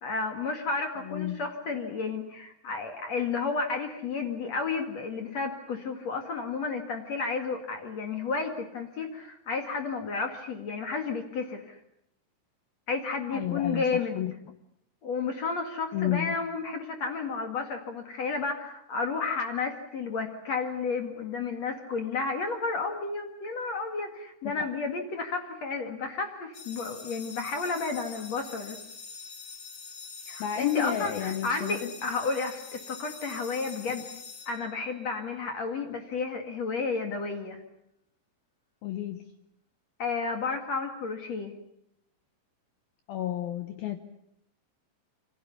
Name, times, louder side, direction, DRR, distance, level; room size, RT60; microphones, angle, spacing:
voice 1, 0.0-11.8 12.9-14.3 15.0-28.8 30.3-34.0 34.5-37.6 40.0-41.5, left 4 dB, 50° left, 5 dB, 2.2 m, -32 dB
voice 2, 1.0-1.5 13.3-14.3 15.9-16.4 24.4-24.7 30.4-31.9 38.8-39.3 43.1-44.0, left 11 dB, 80° left, 8 dB, 2.1 m, -31 dB
sound 1, 26.5-35.2, left 4 dB, 30° left, 3.4 m, -45 dB
28.5 x 24.5 x 7.0 m, 0.75 s
omnidirectional pair, 5.9 m